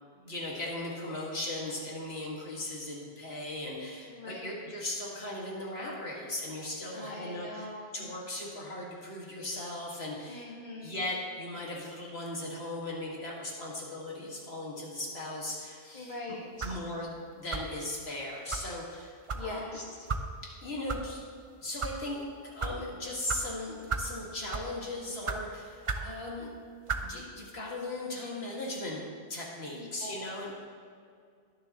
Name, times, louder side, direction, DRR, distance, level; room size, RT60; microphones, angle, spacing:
voice 1, 0.2-7.7 7.9-10.5 10.8-16.4 16.6-19.7 20.4-21.2 21.6-26.5 27.0-29.0 29.3-30.6, left 1 dB, 80° left, -3 dB, 2.2 m, -38 dB
voice 2, 4.0-4.6 6.9-8.1 10.3-11.1 15.9-16.8 19.3-20.1 29.7-30.3, left 2 dB, 45° left, -2 dB, 1.9 m, -42 dB
sound 1, 16.6-16.8 17.5-17.8 18.5-18.7 19.3-19.5 20.1-20.3 20.9-21.0 21.6-21.9 22.6-22.8 23.3-23.4 23.9-24.1 24.5-24.8 25.3-25.4 25.9-26.1 26.9-27.1, right 4 dB, 40° right, 0.6 m, -33 dB
20.5 x 6.9 x 3.0 m, 2.2 s
omnidirectional pair, 1.1 m